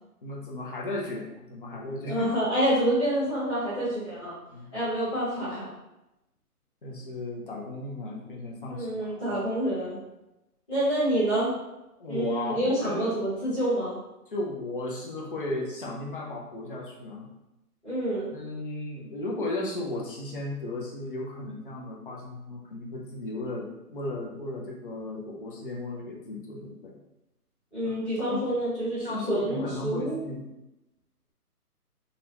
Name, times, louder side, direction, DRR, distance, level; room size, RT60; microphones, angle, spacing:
voice 1, 0.2-2.3 4.5-4.8 6.8-9.4 12.0-13.2 14.3-17.3 18.1-27.0 27.8-28.4 29.0-30.5, left 2 dB, 35° left, -2 dB, 0.5 m, -35 dB
voice 2, 2.1-4.3 4.7-5.7 8.7-10.0 10.7-11.5 12.1-14.0 17.8-18.3 27.7-30.2, right 1 dB, 10° left, -14 dB, 0.8 m, -27 dB
3.9 x 2.2 x 2.8 m, 0.93 s
hypercardioid pair, 155°, 47 cm